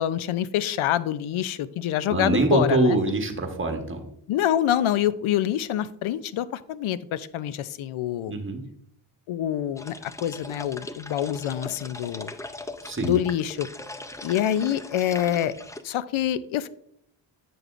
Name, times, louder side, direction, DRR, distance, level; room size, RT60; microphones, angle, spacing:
voice 1, 0.0-3.0 4.3-8.4 9.3-12.3 13.0-13.7 14.2-15.5 15.8-16.7, left 11 dB, 70° left, 16 dB, 0.5 m, -26 dB
voice 2, 2.1-4.0 8.3-8.6 12.8-13.2, right 2 dB, 25° right, 3 dB, 1.2 m, -24 dB
sound 1, 9.8-15.8, left 2 dB, 5° left, 0.3 m, -39 dB
7.8 x 6.6 x 2.4 m, 0.71 s
cardioid pair, 80°, 50 cm